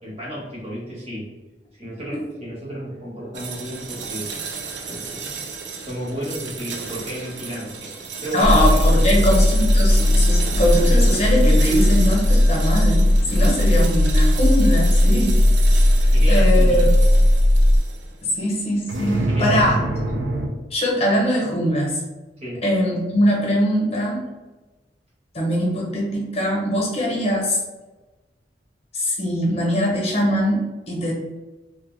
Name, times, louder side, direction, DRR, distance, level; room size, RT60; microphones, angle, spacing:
voice 1, 0.0-1.3 1.8-4.3 4.8-7.9 8.2-9.2 13.2-13.4 16.1-16.9 19.3-19.6 22.4-22.7, equal, 35° right, -4 dB, 0.9 m, -33 dB
sound 1, 3.3-18.2 18.9-20.5, right 3 dB, 70° right, 0.4 m, -31 dB
voice 2, 8.3-15.4 16.3-16.9 18.2-19.8 20.7-22.0 22.6-24.2 25.3-27.6 28.9-31.1, equal, 35° left, -2 dB, 0.8 m, -21 dB
sound 2, 8.4-17.8, left 1 dB, 60° left, 0.4 m, -16 dB
2.7 x 2.1 x 3.0 m, 1.2 s
head